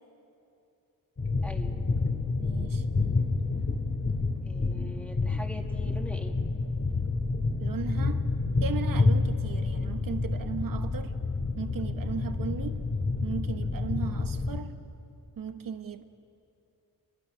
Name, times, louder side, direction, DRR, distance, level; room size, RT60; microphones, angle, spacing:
sound 1, 1.2-14.6, left 3 dB, 35° left, 2.1 m, -29 dB
voice 1, 1.4-1.8 4.4-6.4, left 1 dB, 5° left, 2.1 m, -43 dB
voice 2, 2.4-2.9 7.6-8.3 8.6-11.2 11.6-12.8 13.2-14.8 15.4-16.0, right 6 dB, 65° right, 1.2 m, -37 dB
29.5 x 22.5 x 6.3 m
cardioid pair, 95°, 37 cm